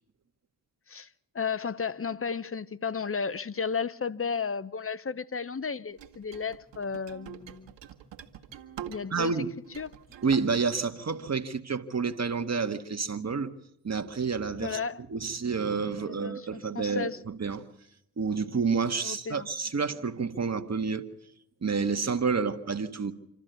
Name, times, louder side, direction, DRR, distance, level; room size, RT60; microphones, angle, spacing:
voice 1, 1.3-7.7 8.9-9.3 9.8-9.9 14.6-15.0 16.0-17.2 19.0-19.5, left 5 dB, 30° left, 0.9 m, -33 dB
sound 1, 6.0-9.3 9.6-10.6, right 9 dB, 65° right, 1.8 m, -45 dB
voice 2, 9.1-9.5 10.2-13.5 13.8-14.8 15.1-17.6 18.2-21.1 21.6-23.1, right 5 dB, 35° right, 1.8 m, -29 dB
26.5 x 13.5 x 8.2 m
hypercardioid pair, 45°, 47 cm